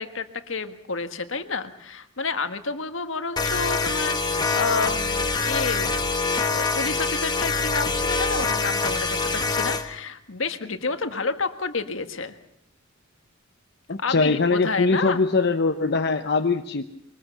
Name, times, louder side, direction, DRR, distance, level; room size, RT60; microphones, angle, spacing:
voice 1, 0.0-6.0 6.5-12.3 14.0-15.2, left 4 dB, 70° left, 8 dB, 1.6 m, -30 dB
sound 1, 3.4-9.9, left 4 dB, 20° left, 1.5 m, -25 dB
voice 2, 13.9-16.8, left 3 dB, 55° left, 5 dB, 0.9 m, -22 dB
23.0 x 20.0 x 7.2 m, 0.72 s
head